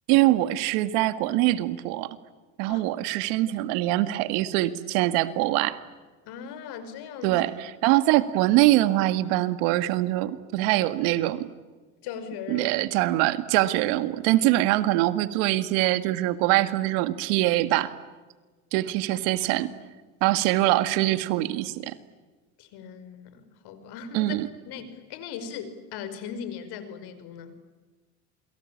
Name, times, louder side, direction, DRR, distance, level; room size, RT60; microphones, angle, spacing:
voice 1, 0.1-2.2 2.6-5.8 7.2-7.5 7.8-11.5 12.5-17.9 18.7-19.7 20.2-22.0 24.1-24.5, right 16 dB, 70° right, 12 dB, 2.0 m, -23 dB
voice 2, 6.3-7.4 12.0-12.8 19.5-19.7 22.6-24.4 24.7-27.5, left 7 dB, 65° left, 11 dB, 5.3 m, -39 dB
28.5 x 23.5 x 8.8 m, 1.3 s
supercardioid pair, 85°, 43 cm